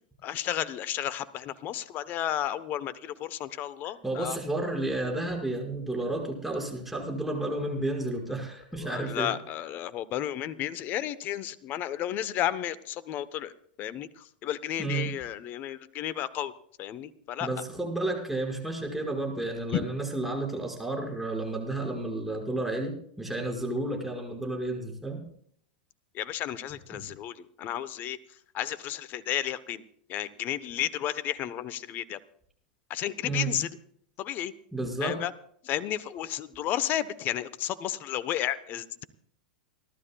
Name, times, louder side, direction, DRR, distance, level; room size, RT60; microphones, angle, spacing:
voice 1, 0.2-4.4 8.8-13.5 13.8-16.5 16.8-17.5 19.7-19.8 26.1-28.2 28.5-29.8 30.1-32.2 32.9-33.7 34.2-34.5 35.0-35.3 35.6-39.0, left 12 dB, 40° left, 17 dB, 1.0 m, -32 dB
voice 2, 4.0-9.3 14.8-15.1 17.4-25.2 26.9-27.1 33.2-33.5 34.7-35.2, right 2 dB, 5° right, 0 dB, 5.6 m, -31 dB
29.0 x 12.5 x 2.3 m, 0.63 s
hypercardioid pair, 100°, 5 cm